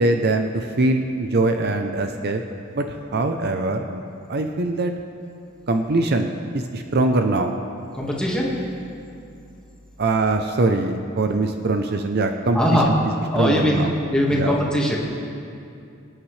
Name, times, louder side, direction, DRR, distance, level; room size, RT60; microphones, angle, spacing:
voice 1, 0.0-2.4 2.7-4.0 4.3-4.9 5.7-7.6 10.0-12.9 13.3-13.9 14.3-14.5, right 2 dB, 50° right, 5 dB, 0.6 m, -22 dB
voice 2, 7.9-8.5 12.5-12.9 13.3-13.8 14.1-15.0, equal, 5° left, -4 dB, 1.8 m, -20 dB
25.0 x 8.9 x 3.3 m, 2.5 s
head